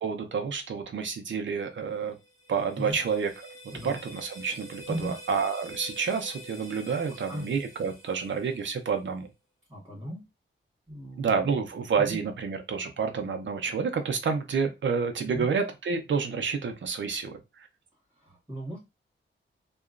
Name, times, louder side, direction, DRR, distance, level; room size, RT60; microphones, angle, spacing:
voice 1, 0.0-2.2 2.5-3.3 3.8-9.3 11.2-17.4, right 5 dB, 65° right, 6 dB, 0.6 m, -29 dB
sound 1, 2.0-9.0, equal, 35° left, 1.2 m, -47 dB
voice 2, 7.1-7.5 9.7-10.2 10.9-11.6 12.0-12.2 15.2-15.5 18.1-18.8, equal, 10° right, -6 dB, 1.5 m, -37 dB
2.9 x 2.3 x 2.4 m, 0.24 s
wide cardioid pair, 145°, 21 cm